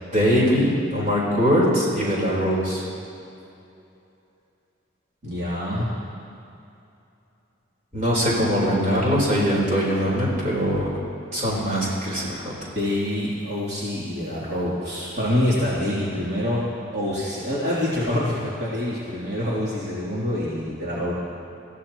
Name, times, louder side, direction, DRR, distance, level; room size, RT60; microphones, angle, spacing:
voice 1, 0.1-2.8 7.9-10.9 11.3-12.5, equal, 40° right, -5 dB, 4.2 m, -22 dB
voice 2, 5.2-6.0 12.7-16.6 16.9-21.1, left 1 dB, 55° right, -10 dB, 3.3 m, -26 dB
24.0 x 16.0 x 3.1 m, 2.7 s
head